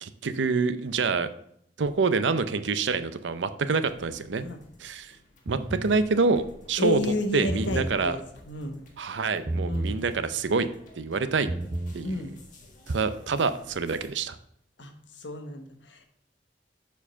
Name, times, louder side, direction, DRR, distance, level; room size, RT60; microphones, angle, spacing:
voice 1, 0.0-1.3 1.8-4.4 4.8-5.1 5.5-7.0 7.3-8.2 9.0-10.7 10.9-11.5 11.9-12.2 12.9-14.4, right 4 dB, 90° right, 12 dB, 0.6 m, -26 dB
sound 1, 3.8-14.1, left 1 dB, 45° left, 1.6 m, -54 dB
sound 2, 5.5-6.0 7.3-8.0 9.5-10.0 11.3-12.0, right 1 dB, 25° right, 0.5 m, -31 dB
voice 2, 6.8-8.2 8.5-8.8 9.7-9.9 12.0-12.3 14.8-16.1, left 2 dB, 85° left, 6 dB, 1.2 m, -31 dB
7.2 x 4.6 x 5.6 m, 0.70 s
head